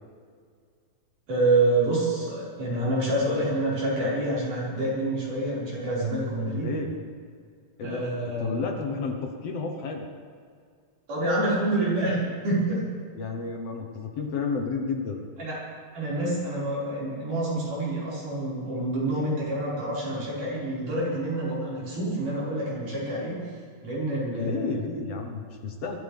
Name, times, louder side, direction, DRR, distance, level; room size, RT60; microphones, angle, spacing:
voice 1, 1.3-6.7 7.8-8.5 11.1-12.8 15.4-15.5 15.9-23.4 23.8-24.7, right 2 dB, 80° right, -8 dB, 7.0 m, -27 dB
voice 2, 6.5-7.0 7.8-10.1 13.2-15.2 24.3-26.0, left 4 dB, 60° left, 3 dB, 2.1 m, -31 dB
23.5 x 13.5 x 3.6 m, 2.1 s
omnidirectional pair, 3.5 m